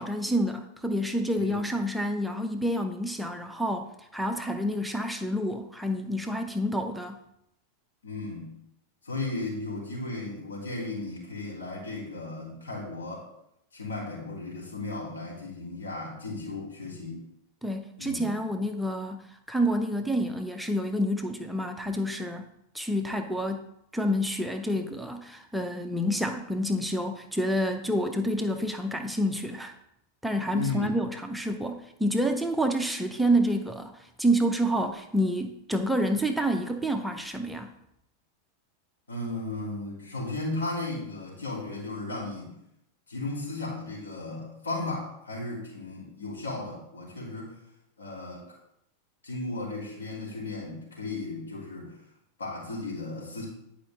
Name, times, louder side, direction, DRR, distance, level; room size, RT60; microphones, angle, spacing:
voice 1, 0.0-7.2 17.6-22.5 22.7-23.7 23.9-29.7 30.2-37.7, equal, ahead, 5 dB, 0.6 m, -28 dB
voice 2, 8.0-8.5 9.0-13.2 13.7-17.2 18.0-18.3 30.5-30.9 39.1-42.5 43.1-47.5 48.0-48.4 49.2-51.9 52.4-53.5, left 2 dB, 75° left, -4 dB, 3.1 m, -35 dB
10.0 x 4.9 x 3.6 m, 0.80 s
figure-of-eight pair, 90°, 0 cm